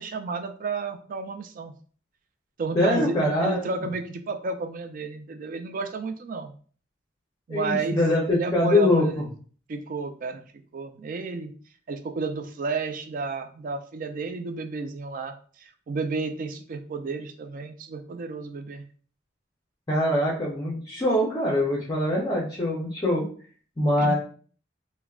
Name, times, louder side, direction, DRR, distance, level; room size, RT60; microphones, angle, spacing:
voice 1, 0.0-1.7 2.6-6.5 7.5-8.0 8.3-9.2 9.7-10.4 10.7-11.5 11.9-18.8 24.0-24.1, right 4 dB, 45° right, 7 dB, 0.3 m, -32 dB
voice 2, 2.7-3.6 7.5-9.3 19.9-23.3 23.8-24.1, left 1 dB, 20° left, -5 dB, 0.5 m, -23 dB
3.4 x 2.0 x 2.3 m, 0.43 s
head